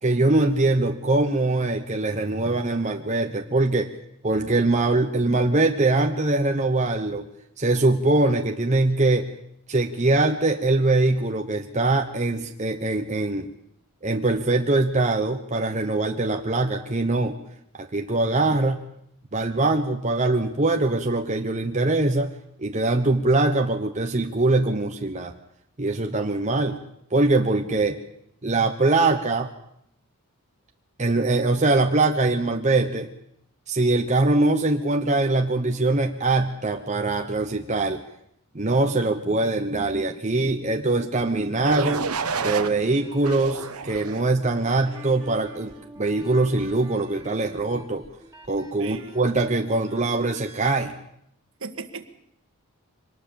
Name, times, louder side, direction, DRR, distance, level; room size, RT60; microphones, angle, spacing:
voice 1, 0.0-3.9 4.2-7.2 7.6-9.3 9.7-13.5 14.0-17.4 17.8-18.8 19.3-22.3 22.6-25.3 25.8-26.8 27.1-28.0 28.4-29.5 31.0-33.1 33.7-38.0 38.5-42.0 42.4-48.0 48.5-50.9, right 2 dB, 30° right, 4 dB, 1.0 m, -22 dB
sound 1, 41.2-50.6, right 1 dB, 15° right, 3.6 m, -47 dB
sound 2, 41.6-42.7 43.2-44.3 44.9-45.2, right 5 dB, 85° right, 1.3 m, -29 dB
voice 2, 48.8-49.1 51.6-52.1, right 3 dB, 60° right, 9 dB, 1.7 m, -36 dB
24.0 x 19.5 x 7.1 m, 0.74 s
head